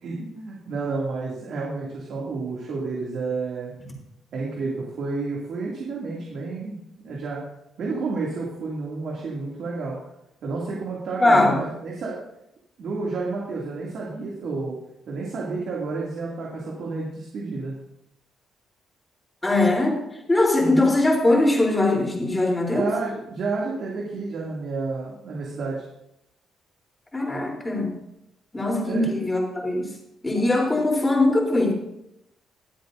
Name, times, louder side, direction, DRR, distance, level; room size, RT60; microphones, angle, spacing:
voice 1, 0.0-3.7 4.3-6.8 7.0-7.4 7.8-10.0 10.4-12.2 12.8-14.8 15.1-17.7 20.6-20.9 22.7-25.8 28.8-29.0, right 3 dB, 65° right, -4 dB, 2.5 m, -30 dB
voice 2, 11.2-11.6 19.4-20.0 20.3-22.9 27.1-27.9 28.5-29.9 30.2-31.7, left 2 dB, 15° left, -1 dB, 3.6 m, -21 dB
21.5 x 7.8 x 2.7 m, 0.82 s
cardioid pair, 90°, 0 cm